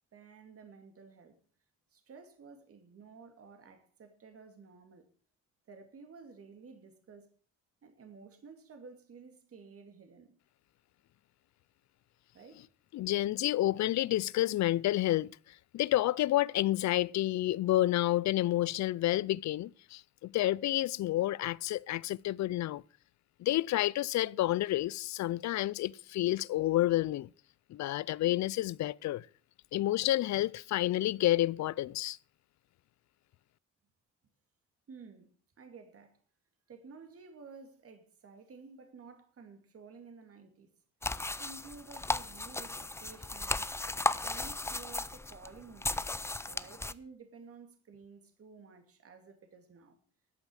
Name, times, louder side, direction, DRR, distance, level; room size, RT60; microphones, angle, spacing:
voice 1, 0.1-1.4 1.9-5.1 5.7-7.3 7.8-10.4 12.3-12.7 34.9-35.3 35.6-36.2 36.7-40.7 41.4-43.6 44.2-46.0 46.5-50.0, right 5 dB, 50° right, 2.4 m, -53 dB
voice 2, 12.9-15.3 15.7-22.8 23.4-27.3 27.7-29.3 29.7-32.2, left 15 dB, 65° left, 0.5 m, -29 dB
sound 1, 41.0-46.9, left 2 dB, 10° left, 0.5 m, -35 dB
13.5 x 8.4 x 6.3 m
cardioid pair, 90°, 30 cm